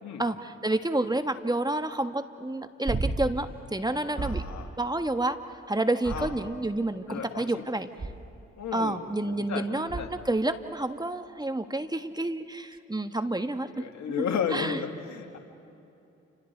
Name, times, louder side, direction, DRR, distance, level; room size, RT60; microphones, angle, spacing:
voice 1, 0.2-4.4 4.8-5.4 5.7-7.9 8.7-14.2 14.5-14.8, right 2 dB, 15° right, 9 dB, 1.5 m, -29 dB
sound 1, 2.9-3.5 4.2-4.7 6.0-6.8 8.0-8.4 9.9-10.3 12.7-12.8, right 3 dB, 30° right, 1.5 m, -33 dB
voice 2, 4.2-4.7 6.1-6.3 7.1-7.6 8.6-9.0 9.3-10.1 13.7-15.4, left 7 dB, 70° left, 4 dB, 2.5 m, -33 dB
29.5 x 26.5 x 4.6 m, 2.8 s
supercardioid pair, 50°, 29 cm